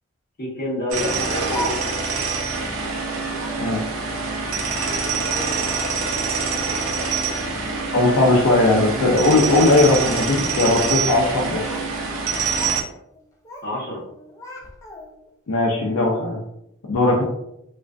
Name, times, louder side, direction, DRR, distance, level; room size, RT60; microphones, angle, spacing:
voice 1, 0.4-2.2 13.6-14.0, left 1 dB, 45° left, -5 dB, 0.9 m, -28 dB
sound 1, 0.9-12.8, right 4 dB, 75° right, 0.5 m, -25 dB
Speech, 1.0-2.1 3.3-3.7 4.7-5.8 6.5-7.3 7.6-8.3 8.7-9.1 9.8-10.1 11.2-11.9 12.2-12.8 13.1-13.7 14.0-15.3, equal, 15° left, 0.3 m, -37 dB
voice 2, 7.9-11.6 15.5-16.4 16.9-17.2, left 2 dB, 80° left, -2 dB, 0.5 m, -18 dB
2.4 x 2.3 x 2.3 m, 0.79 s
head